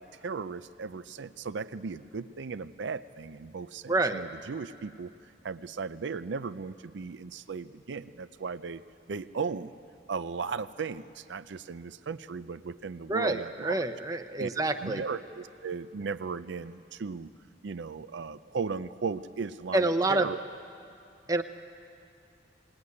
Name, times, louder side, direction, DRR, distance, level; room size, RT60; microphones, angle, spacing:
voice 1, 0.0-5.1 5.4-8.8 9.1-9.7 10.1-13.9 14.4-14.5 14.8-17.3 17.6-20.4, right 5 dB, 75° right, 12 dB, 0.5 m, -36 dB
voice 2, 3.9-4.2 13.1-15.0 19.7-20.3 21.3-21.4, right 2 dB, 20° right, 7 dB, 0.6 m, -27 dB
19.5 x 18.5 x 9.6 m, 2.5 s
head